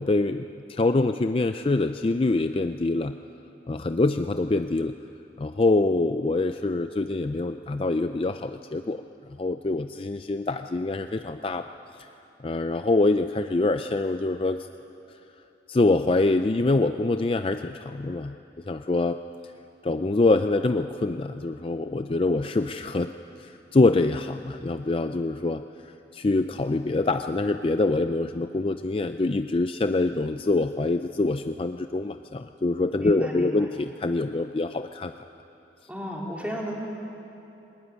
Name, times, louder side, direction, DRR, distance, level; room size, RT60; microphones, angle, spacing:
voice 1, 0.0-3.2 3.7-4.9 5.4-9.0 9.4-11.7 12.4-14.7 15.7-18.4 18.7-19.2 19.8-23.1 23.4-35.1, left 2 dB, 30° left, 9 dB, 0.4 m, -25 dB
voice 2, 33.0-33.5 35.9-36.8, equal, 10° right, -2 dB, 3.3 m, -34 dB
20.0 x 19.5 x 9.7 m, 3.0 s
head